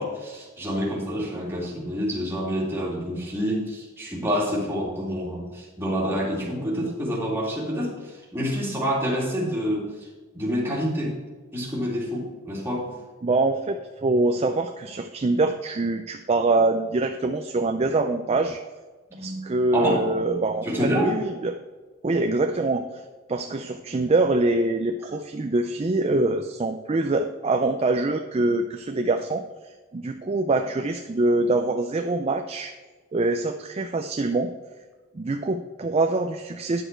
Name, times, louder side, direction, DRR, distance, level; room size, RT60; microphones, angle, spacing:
voice 1, 0.0-10.1 10.3-11.2 11.5-12.9 19.1-19.4 19.7-20.1 20.6-21.1, equal, 10° right, -4 dB, 2.2 m, -27 dB
voice 2, 13.2-18.6 19.2-21.6 22.0-22.8 23.3-29.4 29.9-32.7 33.1-34.5 35.1-36.8, right 2 dB, 30° right, 5 dB, 0.4 m, -24 dB
10.0 x 6.4 x 4.5 m, 1.3 s
head